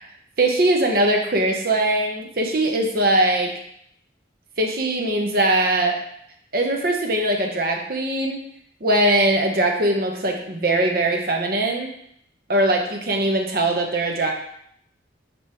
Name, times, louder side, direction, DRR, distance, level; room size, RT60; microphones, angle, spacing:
voice 1, 0.4-3.5 4.6-6.0 6.5-8.4 8.8-11.9 12.5-14.3, right 1 dB, 50° right, 2 dB, 0.9 m, -21 dB
9.1 x 3.5 x 3.0 m, 0.71 s
head